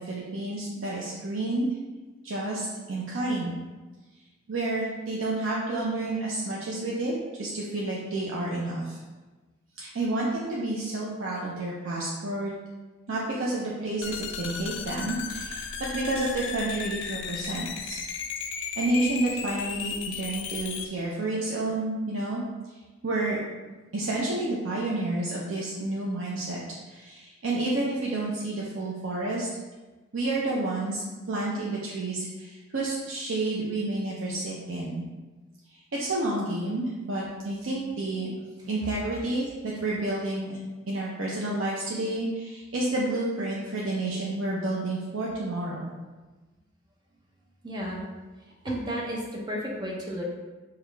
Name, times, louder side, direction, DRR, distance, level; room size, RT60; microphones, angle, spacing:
voice 1, 0.0-1.7 2.2-3.5 4.5-9.0 9.8-12.5 13.1-15.6 15.9-18.0 18.6-22.4 23.0-23.4 23.9-26.6 26.9-29.5 30.1-35.1 35.9-38.3 38.7-40.6 40.9-45.9, right 2 dB, 80° right, -5 dB, 0.5 m, -30 dB
sound 1, 14.0-20.9, left 6 dB, 60° left, 0.3 m, -35 dB
voice 2, 47.6-48.0 48.6-50.2, equal, 20° right, -2 dB, 0.6 m, -32 dB
4.9 x 2.4 x 3.2 m, 1.2 s
head